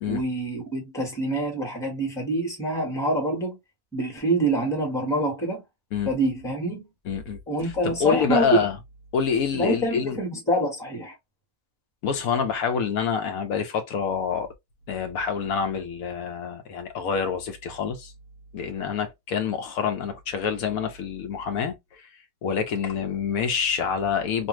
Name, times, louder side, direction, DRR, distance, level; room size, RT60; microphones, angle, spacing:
voice 1, 0.1-3.6 3.9-5.6 6.0-6.8 7.5-8.6 9.6-11.1, right 1 dB, ahead, 1.0 m, -26 dB
voice 2, 7.1-8.8 9.1-10.2 12.0-14.5 14.9-18.1 18.5-21.7 22.4-24.5, left 6 dB, 80° left, 1.0 m, -27 dB
2.6 x 2.4 x 2.9 m
omnidirectional pair, 1.5 m